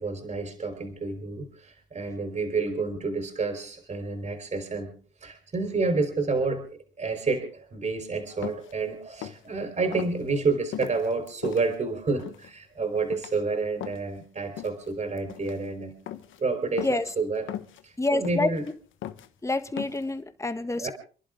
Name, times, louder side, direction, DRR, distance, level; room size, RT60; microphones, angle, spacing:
voice 1, 0.0-4.9 5.2-16.0 16.4-17.5 17.8-18.7 20.8-20.9, right 3 dB, 35° right, 3.9 m, -29 dB
sound 1, 8.4-8.7 9.1-9.5 9.9-10.1 10.7-11.6 12.2-12.5 12.9-13.4 13.8-14.2 14.6-14.9 15.2-15.6 16.1-16.4 16.8-17.1 17.5-17.8 18.2-18.7 19.0-19.3 19.8-20.1, left 11 dB, 80° left, 1.1 m, -38 dB
voice 2, 18.0-18.5 19.4-20.9, left 2 dB, 15° left, 1.6 m, -27 dB
28.5 x 11.0 x 3.6 m
cardioid pair, 90°, 20 cm